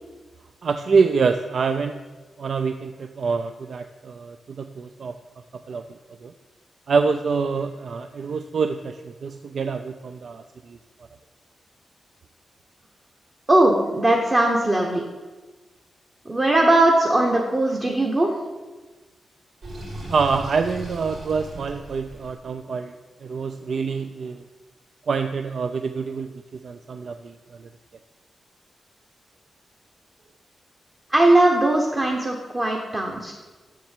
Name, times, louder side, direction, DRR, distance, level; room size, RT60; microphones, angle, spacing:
voice 1, 0.6-2.0 2.4-5.2 5.7-5.8 6.2-6.3 6.9-10.8 20.1-22.9 23.2-24.5 25.1-27.7, right 5 dB, 55° right, 8 dB, 0.4 m, -26 dB
voice 2, 13.5-15.0 16.3-18.3 31.1-33.3, right 1 dB, 20° right, 0 dB, 0.9 m, -19 dB
Sink (filling or washing), 19.6-22.3, right 1 dB, 70° right, 3.2 m, -37 dB
7.5 x 6.8 x 7.4 m, 1.3 s
wide cardioid pair, 170°, 0 cm